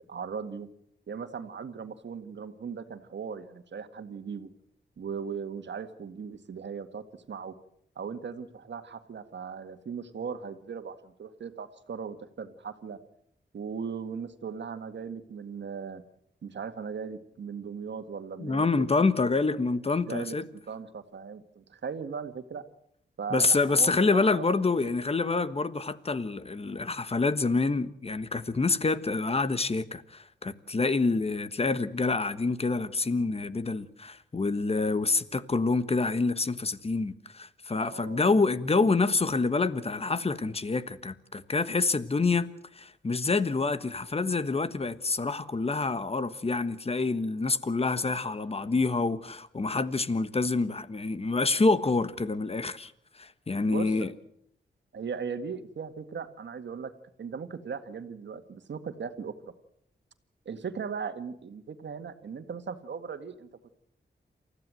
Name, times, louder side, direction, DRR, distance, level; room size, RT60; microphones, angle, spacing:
voice 1, 0.1-0.7 1.1-4.5 5.0-7.6 8.0-13.0 13.5-16.0 16.4-18.8 20.1-20.4 20.7-22.6 23.2-24.5 24.8-24.9 37.9-38.3 53.7-53.9 54.9-56.9 57.2-59.3 60.5-63.5, right 6 dB, 75° right, 1.9 m, -38 dB
voice 2, 18.4-20.4 23.3-42.5 42.7-52.9 53.2-54.1, left 3 dB, 35° left, 1.3 m, -27 dB
28.5 x 15.0 x 7.7 m
wide cardioid pair, 100°, 19 cm